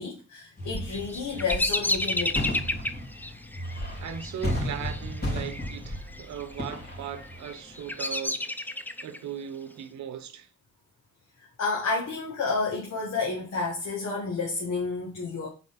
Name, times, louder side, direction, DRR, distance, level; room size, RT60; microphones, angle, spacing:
voice 1, 0.0-2.7 11.4-15.5, left 4 dB, 60° left, 1.7 m, -30 dB
sound 1, 0.6-8.0, equal, 30° left, 3.1 m, -34 dB
Bird vocalization bird call bird song, 0.7-5.8 6.0-6.6 7.2-9.2, left 1 dB, 5° left, 0.5 m, -31 dB
voice 2, 4.0-8.4 9.0-10.5, right 8 dB, 70° right, 0.9 m, -38 dB
4.5 x 4.1 x 5.7 m
cardioid pair, 90°, 30 cm